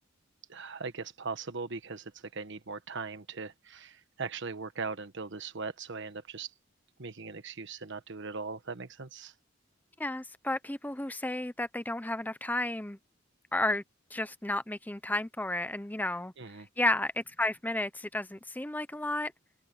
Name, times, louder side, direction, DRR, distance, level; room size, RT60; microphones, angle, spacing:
voice 1, 0.5-6.5 7.0-9.3 16.4-16.7, right 4 dB, 65° right, 1.3 m, -39 dB
voice 2, 10.0-13.0 13.5-13.8 14.1-16.3 16.8-19.3, left 1 dB, 10° left, 0.8 m, -32 dB
head